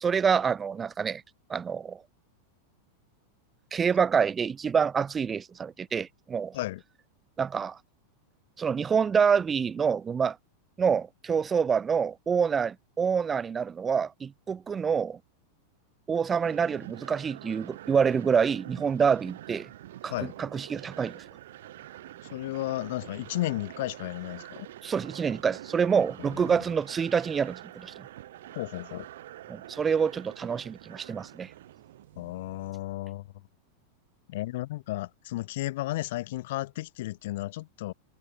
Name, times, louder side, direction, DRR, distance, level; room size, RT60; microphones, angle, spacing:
voice 1, 0.0-1.2 1.5-2.0 3.7-6.5 7.4-7.8 8.6-10.4 10.8-15.2 16.1-19.7 20.0-20.1 20.4-21.2 24.8-27.9 29.5-31.5, right 6 dB, 20° right, 0.5 m, -27 dB
sound 1, 16.4-32.7, right 13 dB, 55° right, 4.1 m, -46 dB
voice 2, 22.3-24.7 26.2-26.6 28.5-29.1 32.2-33.3 34.3-37.9, left 17 dB, 55° left, 0.8 m, -33 dB
figure-of-eight pair, 90°, 0 cm